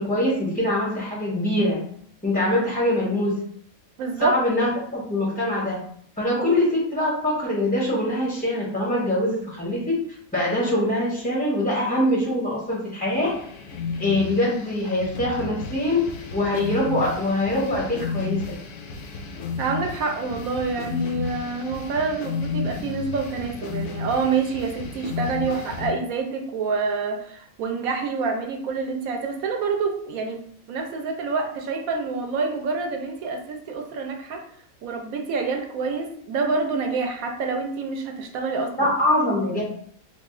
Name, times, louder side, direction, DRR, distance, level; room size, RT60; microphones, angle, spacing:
voice 1, 0.0-1.8 2.2-3.4 4.2-5.8 6.2-10.0 10.3-13.3 14.0-16.0 16.3-18.5 25.5-25.6 38.8-39.6, left 1 dB, 10° left, -5 dB, 0.4 m, -23 dB
voice 2, 4.0-4.4 6.4-6.6 19.6-30.4 30.7-34.4 34.8-38.7, right 4 dB, 75° right, 4 dB, 1.0 m, -27 dB
sound 1, 13.1-25.9, left 5 dB, 65° left, 0.8 m, -33 dB
3.3 x 2.3 x 3.6 m, 0.63 s
omnidirectional pair, 1.5 m